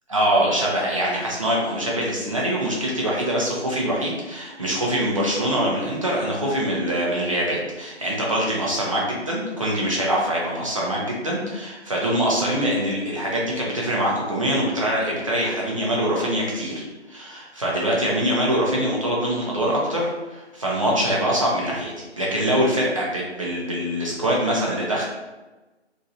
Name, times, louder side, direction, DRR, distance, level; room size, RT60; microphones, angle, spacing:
voice 1, 0.1-25.1, equal, 30° right, -4 dB, 0.5 m, -24 dB
3.0 x 2.6 x 2.6 m, 1.1 s
figure-of-eight pair, 160°, 35 cm